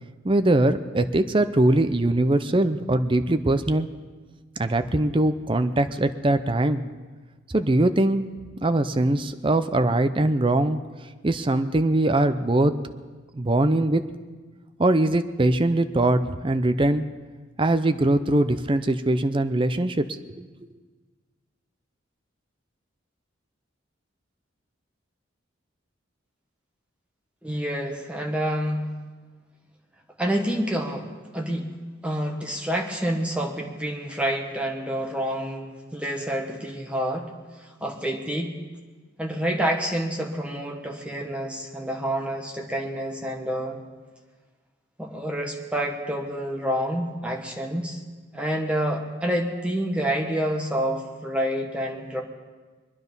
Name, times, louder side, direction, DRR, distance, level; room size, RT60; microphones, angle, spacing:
voice 1, 0.2-3.9 4.6-6.8 7.5-8.3 8.6-10.8 11.2-12.7 13.3-14.0 14.8-17.0 17.6-20.5, right 1 dB, 25° right, 10 dB, 0.6 m, -22 dB
voice 2, 27.4-28.8 30.2-31.7 32.0-37.3 37.8-38.5 39.2-43.8 45.0-48.0 48.3-52.2, equal, 5° right, 0 dB, 1.6 m, -28 dB
24.0 x 10.0 x 5.4 m, 1.4 s
head